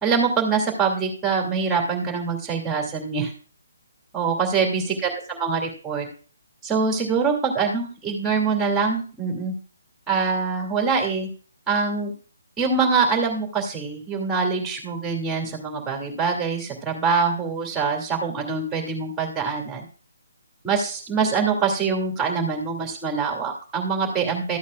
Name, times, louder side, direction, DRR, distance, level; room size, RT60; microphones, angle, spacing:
voice 1, 0.0-3.3 4.1-6.1 6.6-9.5 10.1-11.3 11.7-12.1 12.6-19.9 20.6-24.6, right 5 dB, 10° right, 1 dB, 2.5 m, -24 dB
13.5 x 8.6 x 2.4 m, 0.39 s
figure-of-eight pair, 140°, 0 cm